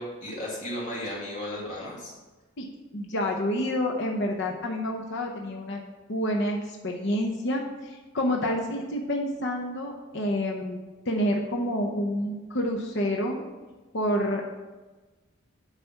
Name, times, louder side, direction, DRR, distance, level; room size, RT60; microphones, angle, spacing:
voice 1, 0.0-2.1, left 1 dB, 40° left, -5 dB, 2.6 m, -34 dB
voice 2, 2.6-5.8 6.1-10.8 11.1-13.4 13.9-14.6, equal, 60° left, 1 dB, 0.8 m, -28 dB
9.0 x 4.2 x 5.8 m, 1.2 s
head